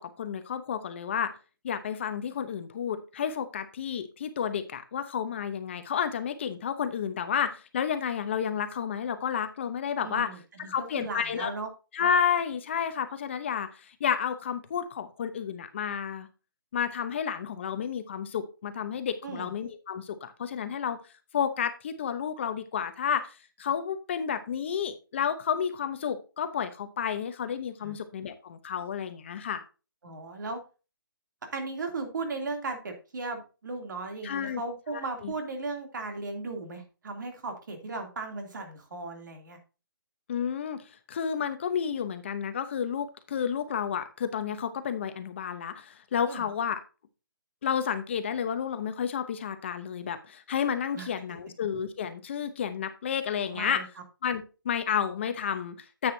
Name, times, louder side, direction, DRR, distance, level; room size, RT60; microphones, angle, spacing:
voice 1, 0.0-1.3 1.6-10.3 10.6-11.5 11.9-16.3 16.7-21.0 21.3-29.6 34.2-34.6 34.9-35.3 40.3-46.8 47.6-53.8 54.2-56.1, left 8 dB, 30° left, 10 dB, 0.8 m, -31 dB
voice 2, 10.0-11.7 19.2-19.5 27.8-28.0 30.0-30.6 31.5-39.6 46.2-46.5 50.9-51.1 53.5-53.8, right 3 dB, 55° right, 4 dB, 2.9 m, -36 dB
10.0 x 8.0 x 2.7 m, 0.31 s
hypercardioid pair, 170°, 12 cm